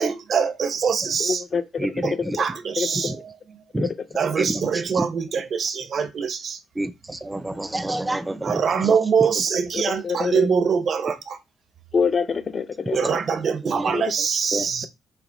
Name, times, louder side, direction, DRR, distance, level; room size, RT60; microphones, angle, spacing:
voice 1, 0.0-1.4 2.0-3.6 4.1-6.6 8.3-11.4 12.9-14.9, right 6 dB, 50° right, 0.8 m, -24 dB
voice 2, 1.2-2.1 2.8-3.1 3.8-3.9 10.0-10.5 11.9-13.2 13.9-14.0, left 5 dB, 35° left, 0.5 m, -25 dB
voice 3, 1.8-2.4 3.0-3.2 3.7-3.9 4.4-4.6 5.0-5.1 6.8-8.9 13.6-13.9 14.5-14.7, right 1 dB, 10° right, 0.5 m, -28 dB
5.9 x 2.0 x 3.9 m
cardioid pair, 120°, 0 cm